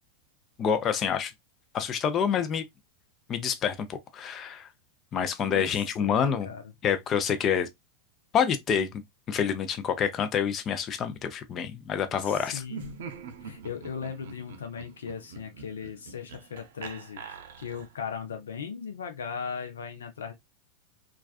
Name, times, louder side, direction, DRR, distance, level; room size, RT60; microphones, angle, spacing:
voice 1, 0.6-1.3 1.7-2.6 3.3-4.7 5.1-6.5 6.8-7.7 8.3-8.9 9.3-12.6, left 7 dB, 35° left, 0.5 m, -27 dB
voice 2, 5.5-6.6 12.2-13.0 13.4-17.2 17.6-20.3, left 6 dB, 85° left, 0.5 m, -38 dB
Laughter, 12.6-18.1, right 6 dB, 75° right, 0.5 m, -44 dB
2.4 x 2.2 x 2.3 m
hypercardioid pair, 105°, 0 cm